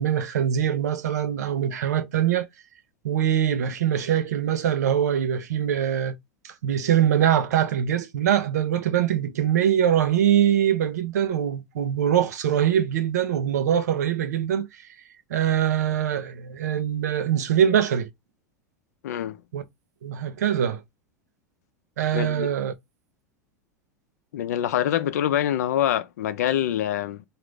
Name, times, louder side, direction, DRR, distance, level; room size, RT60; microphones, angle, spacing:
voice 1, 0.0-2.5 3.0-6.2 6.4-14.7 15.3-18.1 19.5-19.6 20.0-20.8 22.0-22.7, right 9 dB, 75° right, 0.6 m, -23 dB
voice 2, 19.0-19.4 22.1-22.5 24.3-27.2, left 11 dB, 70° left, 0.5 m, -25 dB
3.8 x 2.5 x 3.1 m
hypercardioid pair, 90°, 9 cm